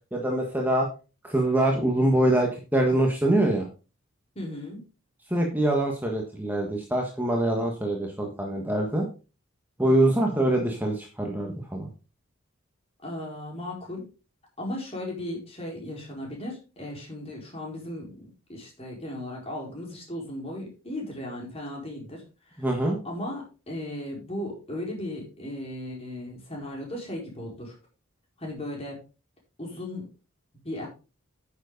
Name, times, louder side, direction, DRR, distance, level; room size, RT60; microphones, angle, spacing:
voice 1, 0.1-0.9 1.2-3.7 5.3-9.1 9.8-11.9 22.6-23.0, right 1 dB, 10° right, 1 dB, 1.5 m, -24 dB
voice 2, 4.3-4.8 9.9-10.2 13.0-14.0 14.6-22.2 22.5-22.7 23.0-27.7 28.4-29.0 29.6-30.1 30.6-30.9, left 1 dB, 30° left, -1 dB, 4.6 m, -36 dB
10.5 x 7.0 x 4.0 m, 0.32 s
head